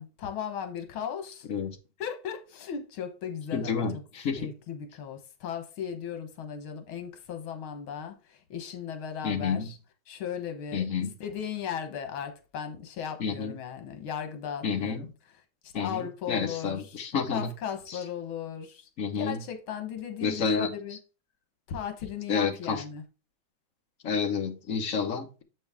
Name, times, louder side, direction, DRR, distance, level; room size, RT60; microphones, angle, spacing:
voice 1, 0.0-1.5 2.0-4.0 4.4-9.8 10.1-15.1 15.6-17.0 17.3-18.9 19.2-21.0 21.7-23.0, left 8 dB, 80° left, 1.9 m, -37 dB
voice 2, 3.5-4.4 9.2-9.7 10.7-11.1 13.2-13.5 14.6-15.1 15.7-17.5 17.9-18.0 19.0-19.4 20.2-20.7 22.3-22.8 24.0-25.4, left 6 dB, 55° left, 0.9 m, -29 dB
7.4 x 5.5 x 3.5 m
omnidirectional pair, 2.2 m